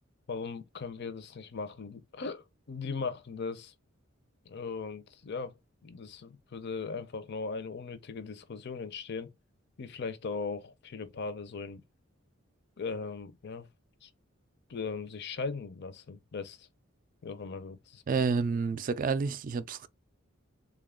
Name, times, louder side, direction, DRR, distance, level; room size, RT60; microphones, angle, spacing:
voice 1, 0.3-3.7 4.5-5.5 5.8-9.3 9.8-11.8 12.8-13.7 14.0-14.1 14.7-16.7 17.2-18.2, left 4 dB, 55° left, 0.5 m, -38 dB
voice 2, 18.1-19.9, right 5 dB, 40° right, 0.3 m, -29 dB
3.7 x 2.3 x 3.6 m
head